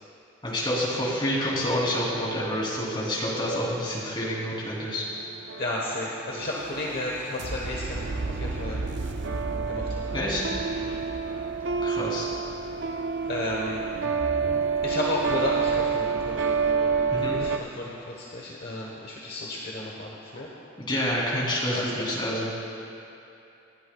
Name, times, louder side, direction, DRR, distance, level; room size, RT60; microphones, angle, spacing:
voice 1, 0.4-5.1 10.1-10.5 11.8-12.3 17.1-17.4 20.9-22.5, equal, 25° left, -6 dB, 3.1 m, -28 dB
sound 1, 4.7-17.6, right 5 dB, 60° right, 0.6 m, -29 dB
voice 2, 5.6-8.8 9.7-10.1 10.7-11.0 11.8-12.0 13.2-13.9 14.8-16.4 17.3-20.5 21.6-22.1, left 1 dB, 45° left, -3 dB, 1.2 m, -33 dB
27.5 x 11.0 x 2.4 m, 2.8 s
head